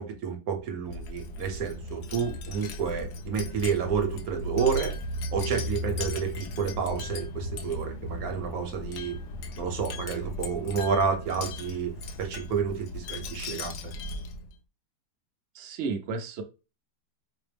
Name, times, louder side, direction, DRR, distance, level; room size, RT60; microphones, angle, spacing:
voice 1, 0.0-4.9 5.3-9.2 9.6-13.9, right 6 dB, 60° right, 3 dB, 1.2 m, -30 dB
Wind chime, 0.8-14.5, left 1 dB, 70° left, 1.1 m, -36 dB
voice 2, 15.6-16.4, right 4 dB, 85° right, 5 dB, 0.6 m, -32 dB
5.0 x 2.0 x 3.3 m, 0.30 s
omnidirectional pair, 2.0 m